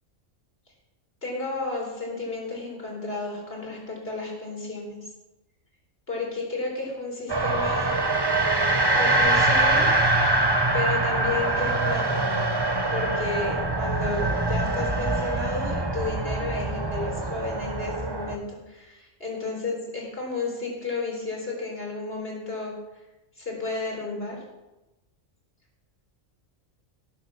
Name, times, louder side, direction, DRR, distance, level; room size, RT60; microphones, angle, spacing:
voice 1, 1.2-5.0 6.1-8.0 8.9-10.0 10.7-12.6 12.9-22.8 23.4-24.4, left 3 dB, 50° left, -1 dB, 4.3 m, -32 dB
sound 1, 7.3-18.4, right 2 dB, 20° right, 1.0 m, -24 dB
17.5 x 7.9 x 6.2 m, 1.0 s
omnidirectional pair, 1.3 m